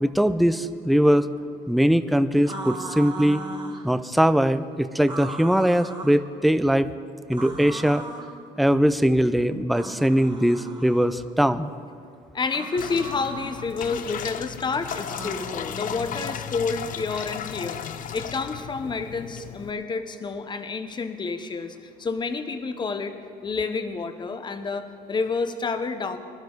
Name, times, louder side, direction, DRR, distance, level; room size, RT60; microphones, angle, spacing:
voice 1, 0.0-1.3 1.7-3.4 3.8-6.9 7.3-8.0 8.6-11.7, equal, ahead, 12 dB, 0.4 m, -21 dB
sound 1, 2.4-3.9 5.0-6.2 7.3-8.3 9.7-11.1 12.4-13.7 15.0-16.4, right 3 dB, 25° right, 1.5 m, -38 dB
voice 2, 12.3-26.2, left 4 dB, 25° left, 9 dB, 0.9 m, -29 dB
sound 2, 12.8-19.7, left 9 dB, 50° left, 0.6 m, -35 dB
21.5 x 12.0 x 3.9 m, 2.3 s
cardioid pair, 110°, 17 cm